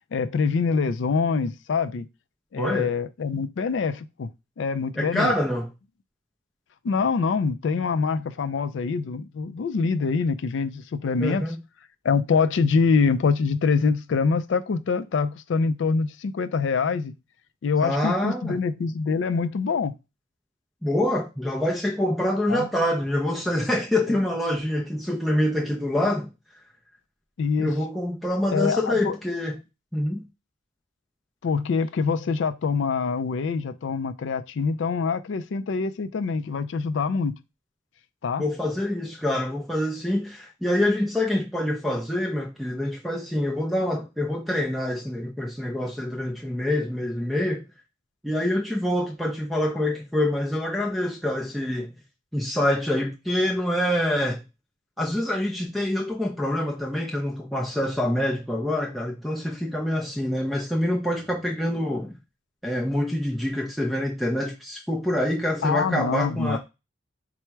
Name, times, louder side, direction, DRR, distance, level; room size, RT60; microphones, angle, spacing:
voice 1, 0.1-2.1 2.5-4.3 4.6-5.3 6.8-11.4 12.0-17.1 17.6-19.9 22.5-22.7 27.4-27.7 28.5-29.1 31.4-37.4 38.2-38.4 65.6-66.6, left 5 dB, 65° left, 0.4 m, -25 dB
voice 2, 2.6-2.9 5.0-5.7 11.2-11.6 17.8-18.6 20.8-26.3 27.6-29.6 29.9-30.2 38.4-47.6 48.2-51.9 52.3-54.4 55.0-62.1 62.6-66.6, left 1 dB, ahead, 0.4 m, -26 dB
4.4 x 2.0 x 4.5 m
head